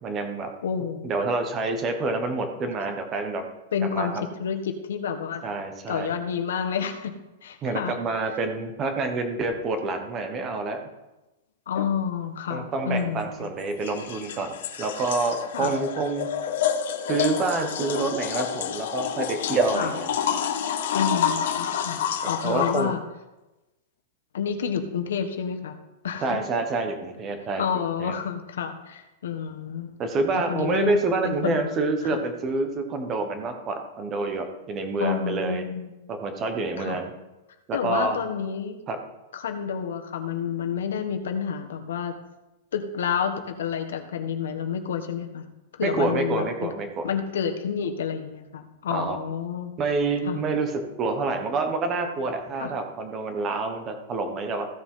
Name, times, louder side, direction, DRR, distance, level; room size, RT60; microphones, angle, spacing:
voice 1, 0.0-0.5 1.0-3.4 3.9-4.2 5.4-6.1 7.6-10.9 12.5-16.3 17.1-20.1 22.2-22.9 26.2-28.1 30.0-35.6 36.1-37.1 37.7-38.2 38.9-39.0 45.8-47.1 48.9-49.2 49.8-54.7, right 3 dB, 20° right, 6 dB, 1.1 m, -27 dB
voice 2, 0.6-1.1 3.7-4.1 4.4-5.4 5.9-7.1 7.4-8.0 11.7-13.4 15.5-15.7 19.7-19.9 20.9-23.0 24.3-25.8 26.0-26.4 27.6-29.9 30.3-31.7 35.0-35.9 36.8-37.0 37.7-38.8 39.3-42.2 42.7-45.5 45.7-46.7 47.0-49.7 50.3-50.4 52.6-52.7, left 7 dB, 90° left, 7 dB, 1.5 m, -29 dB
sound 1, 11.7-11.9 13.6-22.8, left 9 dB, 60° left, 0.9 m, -28 dB
15.5 x 6.6 x 3.8 m, 1.0 s
supercardioid pair, 180°, 0 cm